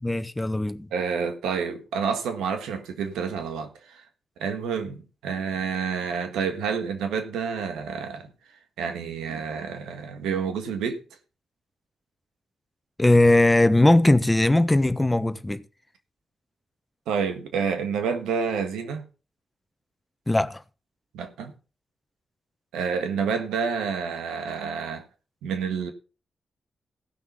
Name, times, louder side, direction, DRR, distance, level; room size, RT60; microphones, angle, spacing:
voice 1, 0.0-0.9 13.0-15.6 20.3-20.6, left 1 dB, 20° left, 1.1 m, -19 dB
voice 2, 0.9-4.0 4.4-8.3 8.8-11.0 17.1-19.0 21.1-21.5 22.7-25.0 25.4-25.9, right 6 dB, 85° right, 1.6 m, -29 dB
16.0 x 6.0 x 5.6 m
supercardioid pair, 40°, 0 cm